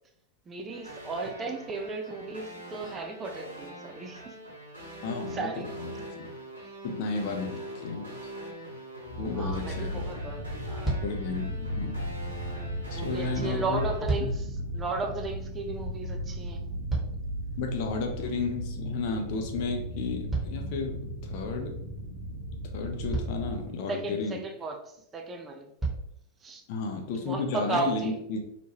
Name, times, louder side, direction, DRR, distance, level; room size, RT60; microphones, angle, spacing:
voice 1, 0.5-4.4 5.3-5.7 7.2-7.3 9.3-11.0 12.9-14.4 14.7-16.6 23.9-25.7 26.4-26.6 27.3-28.1, right 3 dB, 20° right, 3 dB, 0.4 m, -35 dB
sound 1, 0.7-14.0, right 1 dB, 80° right, 1.1 m, -43 dB
voice 2, 5.0-6.3 6.8-8.1 9.2-10.2 11.0-12.0 12.9-13.9 14.2-14.3 17.6-21.8 22.7-24.4 26.7-28.4, left 4 dB, 45° left, 2 dB, 0.5 m, -33 dB
sound 2, 9.0-23.7, equal, 65° right, 0.8 m, -36 dB
sound 3, 10.8-11.3 13.7-14.5 16.4-17.5 20.3-21.3 22.5-22.6 23.1-23.6 25.0-25.1 25.8-26.2 27.0-27.1, right 2 dB, 5° right, 0.9 m, -33 dB
2.9 x 2.2 x 2.9 m, 0.76 s
figure-of-eight pair, 90°, 0 cm